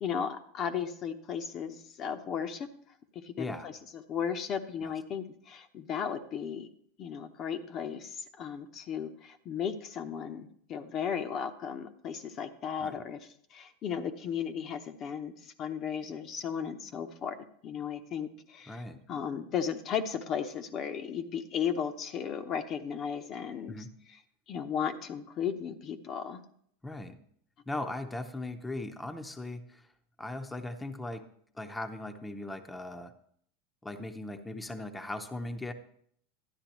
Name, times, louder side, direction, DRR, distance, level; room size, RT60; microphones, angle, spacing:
voice 1, 0.0-2.7 3.1-3.7 4.1-6.7 7.0-13.2 13.5-17.4 17.6-18.8 19.1-23.8 24.5-26.4, left 7 dB, 40° left, 7 dB, 0.8 m, -35 dB
voice 2, 3.4-3.7 4.8-4.9 12.8-13.0 18.7-19.0 23.7-23.9 26.8-27.2 27.7-29.9 30.2-31.2 31.5-33.1 33.8-35.7, left 2 dB, 10° left, 6 dB, 0.7 m, -38 dB
12.0 x 9.7 x 3.0 m, 0.64 s
hypercardioid pair, 100°, 0 cm